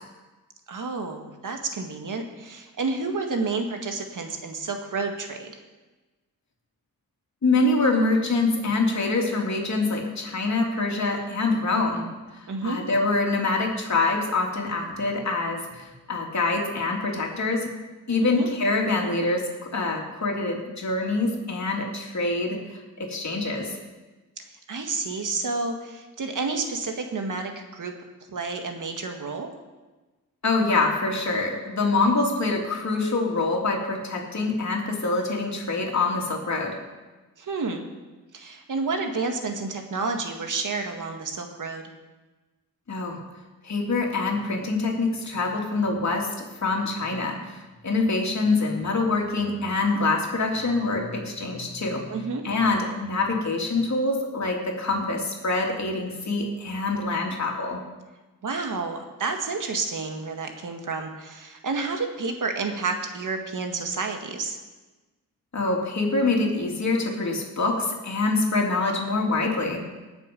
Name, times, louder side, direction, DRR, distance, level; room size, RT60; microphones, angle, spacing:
voice 1, 0.7-5.5 12.5-12.8 18.2-18.5 24.7-27.9 28.3-29.5 37.4-37.9 38.3-41.9 52.1-52.4 58.4-64.6, right 3 dB, 60° right, 4 dB, 1.9 m, -30 dB
voice 2, 7.4-12.1 12.3-17.7 18.1-23.7 30.4-36.8 42.9-43.2 43.6-52.1 52.4-57.8 65.5-69.8, left 3 dB, 50° left, 0 dB, 3.1 m, -25 dB
19.0 x 7.1 x 5.4 m, 1.2 s
cardioid pair, 65°, 35 cm